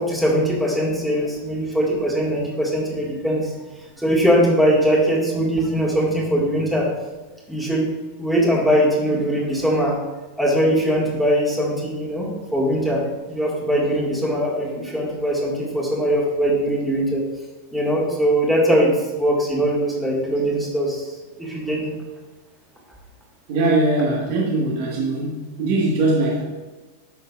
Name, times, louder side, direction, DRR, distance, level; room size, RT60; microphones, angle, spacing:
voice 1, 0.0-3.5 4.0-6.9 7.5-7.9 8.2-10.0 10.4-17.2 17.7-18.9 19.2-21.1 21.4-21.9, equal, 5° right, -4 dB, 2.0 m, -21 dB
voice 2, 23.5-26.4, right 2 dB, 45° right, -2 dB, 1.6 m, -21 dB
9.6 x 6.6 x 2.5 m, 1.2 s
figure-of-eight pair, 90°, 0 cm